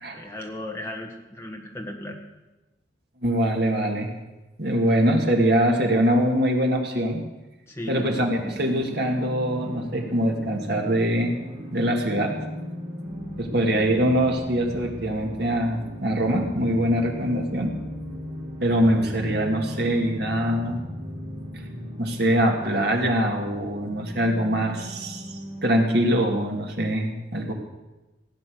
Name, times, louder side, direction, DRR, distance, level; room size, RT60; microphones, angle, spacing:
voice 1, 0.1-2.2 7.7-8.0, left 1 dB, 15° left, 0 dB, 1.7 m, -36 dB
voice 2, 3.2-4.1 4.6-7.2 7.9-11.4 11.7-12.5 13.4-17.7 18.6-20.8 22.0-27.5, equal, 60° right, 2 dB, 2.0 m, -23 dB
sound 1, 8.0-25.8, equal, 35° right, 3.3 m, -37 dB
16.5 x 8.8 x 6.3 m, 1.1 s
head